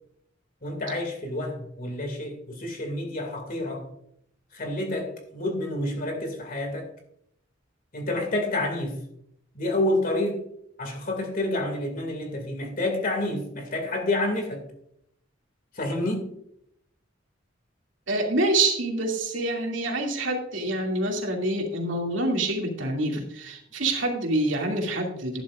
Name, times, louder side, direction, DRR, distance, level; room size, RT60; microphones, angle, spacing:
voice 1, 0.6-3.9 4.5-6.9 7.9-9.0 9.5-10.4 10.8-14.6 15.8-16.3, left 1 dB, 45° left, 4 dB, 2.4 m, -29 dB
voice 2, 18.1-25.4, right 2 dB, 75° right, 0 dB, 2.6 m, -26 dB
11.5 x 11.0 x 2.5 m, 0.73 s
head